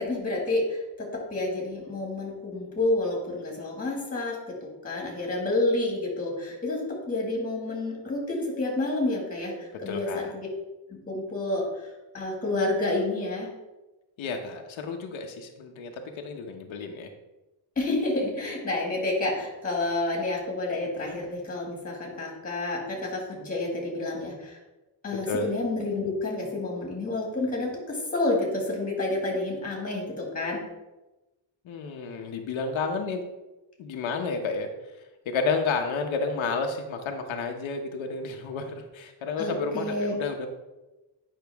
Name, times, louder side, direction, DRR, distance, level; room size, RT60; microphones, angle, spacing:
voice 1, 0.0-4.6 4.8-6.8 7.1-9.5 9.8-10.5 11.1-11.6 12.1-13.5 17.8-24.6 25.0-30.6 39.4-40.1, left 2 dB, 20° left, -1 dB, 2.0 m, -29 dB
voice 2, 9.9-10.3 14.2-17.1 25.2-25.5 31.6-33.2 33.8-34.7 35.3-40.5, left 4 dB, 90° left, 3 dB, 1.0 m, -31 dB
8.8 x 5.6 x 3.5 m, 1.0 s
wide cardioid pair, 180°, 46 cm